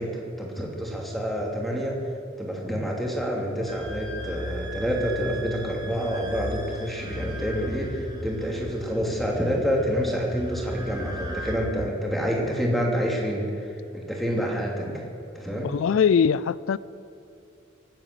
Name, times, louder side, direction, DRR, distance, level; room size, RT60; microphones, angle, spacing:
voice 1, 0.0-2.0 2.4-15.1 15.3-15.7, equal, ahead, -1 dB, 2.8 m, -28 dB
sound 1, 3.7-11.5, equal, 20° right, 2.5 m, -36 dB
voice 2, 15.6-16.8, left 7 dB, 85° left, 19 dB, 0.4 m, -21 dB
24.0 x 9.0 x 6.8 m, 2.7 s
head